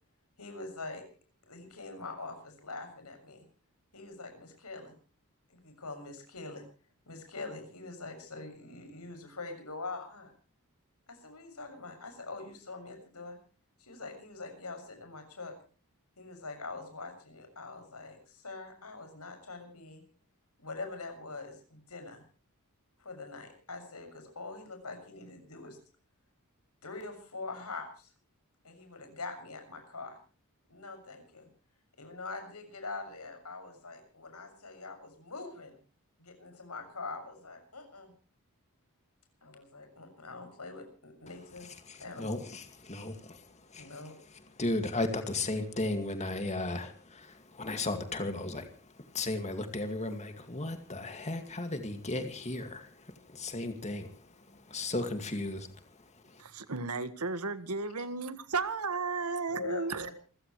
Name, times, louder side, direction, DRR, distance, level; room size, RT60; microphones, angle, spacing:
voice 1, 0.4-1.0 1.4-3.5 3.9-5.0 5.5-6.6 7.1-10.3 11.1-13.4 13.8-15.5 16.2-20.0 20.6-22.2 23.0-25.8 26.8-28.1 28.6-30.2 30.7-31.5 32.0-35.8 36.2-38.1 39.4-41.7 42.0-42.4 43.8-44.1 59.5-60.1, left 3 dB, 85° left, 6.9 m, -44 dB
voice 2, 41.6-44.0 44.3-56.4, left 2 dB, 30° left, 2.3 m, -36 dB
voice 3, 56.4-60.1, right 4 dB, 80° right, 1.7 m, -34 dB
28.0 x 15.5 x 3.2 m
head